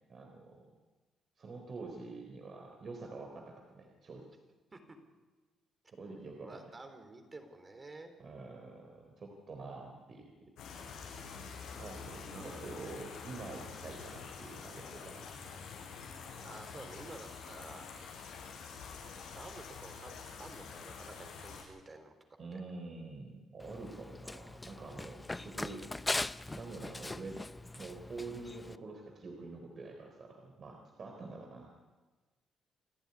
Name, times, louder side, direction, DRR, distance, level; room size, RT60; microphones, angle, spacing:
voice 1, 0.1-0.6 1.4-4.3 5.9-6.7 8.2-10.5 11.8-15.3 22.4-26.2 26.5-27.4 27.8-31.7, right 3 dB, 45° right, 2 dB, 3.9 m, -46 dB
voice 2, 6.2-8.2 12.3-12.6 16.4-17.9 19.3-22.1 22.5-22.6, right 2 dB, 25° right, 6 dB, 3.8 m, -51 dB
sound 1, 10.6-21.6, left 5 dB, 90° left, 6.4 m, -47 dB
Run, 23.6-28.8, left 2 dB, 15° left, 0.6 m, -40 dB
28.5 x 11.5 x 9.9 m, 1.3 s
cardioid pair, 90°, 0 cm